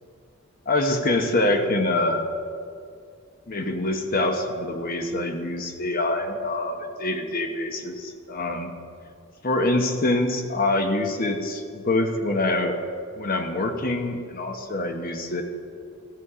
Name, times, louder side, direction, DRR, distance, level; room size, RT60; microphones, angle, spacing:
voice 1, 0.7-2.3 3.5-8.7 9.4-12.8 13.2-15.4, left 2 dB, 45° left, 5 dB, 1.0 m, -25 dB
14.0 x 9.6 x 5.0 m, 2.3 s
head